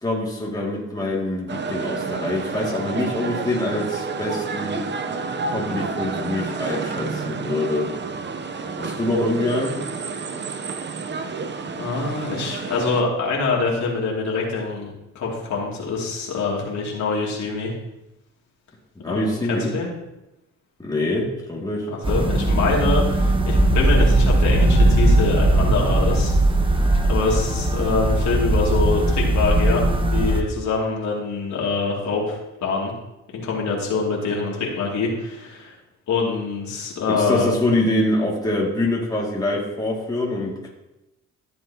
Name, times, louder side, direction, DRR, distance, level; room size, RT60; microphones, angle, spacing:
voice 1, 0.0-4.8 5.5-7.9 8.8-9.8 19.0-19.7 20.8-21.9 37.1-40.7, left 1 dB, 10° left, -3 dB, 2.4 m, -25 dB
sound 1, 1.5-13.0, right 4 dB, 35° right, 0.8 m, -30 dB
voice 2, 11.8-17.7 19.0-19.9 21.9-26.3 26.7-29.8 30.1-32.9 33.3-35.8 36.1-37.5, left 3 dB, 70° left, -3 dB, 2.7 m, -25 dB
sound 2, 22.0-30.4, right 1 dB, 15° right, 1.1 m, -19 dB
14.0 x 7.4 x 2.9 m, 0.93 s
cardioid pair, 90°, 30 cm